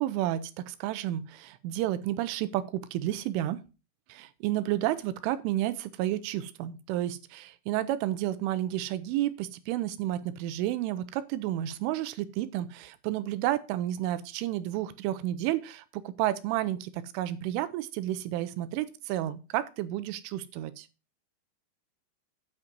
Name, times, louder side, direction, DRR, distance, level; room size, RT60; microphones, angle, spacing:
voice 1, 0.0-3.6 4.1-20.9, right 13 dB, 80° right, 13 dB, 3.2 m, -31 dB
9.3 x 5.6 x 5.2 m, 0.31 s
omnidirectional pair, 5.7 m